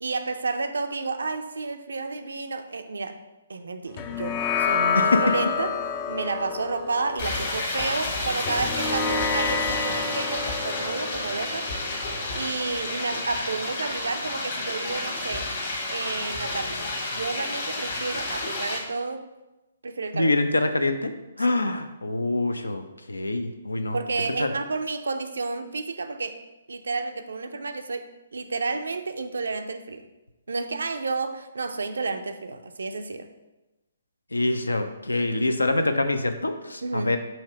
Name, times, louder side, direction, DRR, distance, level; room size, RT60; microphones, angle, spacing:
voice 1, 0.0-3.2 3.5-5.7 6.1-11.7 12.3-15.5 15.9-19.3 19.8-20.3 21.4-21.5 23.9-26.4 26.7-28.0 28.3-30.1 30.5-33.3 36.8-37.1, right 4 dB, 65° right, 8 dB, 0.5 m, -31 dB
sound 1, 4.0-12.7, left 6 dB, 25° left, 0.4 m, -29 dB
sound 2, 7.2-18.8, left 2 dB, 45° left, 1.4 m, -30 dB
voice 2, 20.1-21.1 21.4-24.0 24.3-24.5 34.3-37.2, left 2 dB, 75° left, 8 dB, 0.5 m, -25 dB
5.7 x 3.2 x 5.4 m, 1.0 s
figure-of-eight pair, 130°, 0 cm